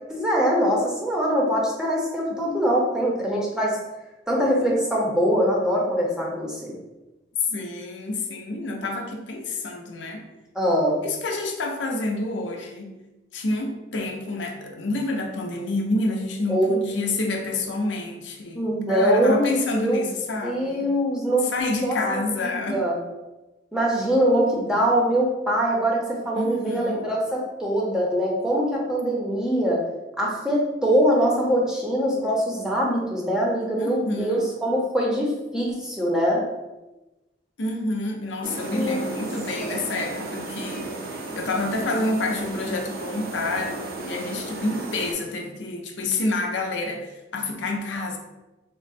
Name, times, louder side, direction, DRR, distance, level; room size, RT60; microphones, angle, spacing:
voice 1, 0.1-3.8 4.3-6.7 10.5-11.0 16.5-16.7 18.5-20.1 20.4-21.5 21.8-23.0 23.7-29.8 30.2-36.4 38.7-39.0 39.6-39.8, equal, 5° right, -3 dB, 0.7 m, -23 dB
voice 2, 7.5-10.2 11.0-13.0 13.3-20.9 21.5-22.9 26.3-27.1 33.8-34.5 37.6-41.1 41.3-48.2, left 2 dB, 90° left, 2 dB, 0.6 m, -28 dB
sound 1, 38.4-45.1, right 2 dB, 55° right, 0.5 m, -34 dB
3.7 x 2.1 x 4.1 m, 1.0 s
head